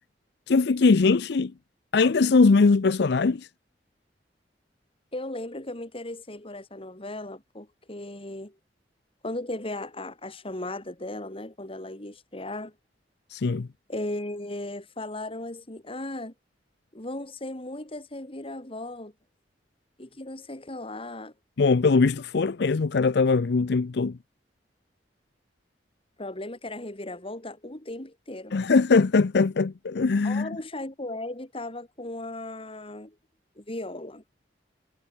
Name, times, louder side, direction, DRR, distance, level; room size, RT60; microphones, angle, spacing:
voice 1, 0.5-1.5 1.9-3.5 13.3-13.7 21.6-24.1 28.5-30.5, left 4 dB, 65° left, 0.5 m, -21 dB
voice 2, 5.1-8.5 9.2-12.7 13.9-16.3 16.9-19.1 20.0-21.3 26.2-28.5 30.2-33.1 33.6-34.2, left 1 dB, 35° left, 3.2 m, -36 dB
head